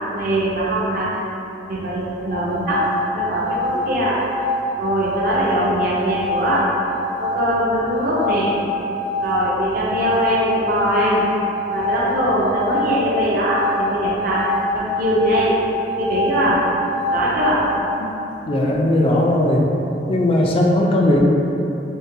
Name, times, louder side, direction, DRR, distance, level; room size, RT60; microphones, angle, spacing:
voice 1, 0.1-1.2 1.7-4.3 4.8-6.7 7.2-8.6 9.2-11.2 11.7-15.6 16.0-16.7 17.1-17.7, right 1 dB, 55° right, -6 dB, 0.5 m, -21 dB
sound 1, 2.2-18.0, left 2 dB, 85° left, 0.7 m, -25 dB
voice 2, 18.5-19.6 20.1-21.2, left 1 dB, 30° left, -1 dB, 0.3 m, -17 dB
3.8 x 2.1 x 2.6 m, 2.9 s
head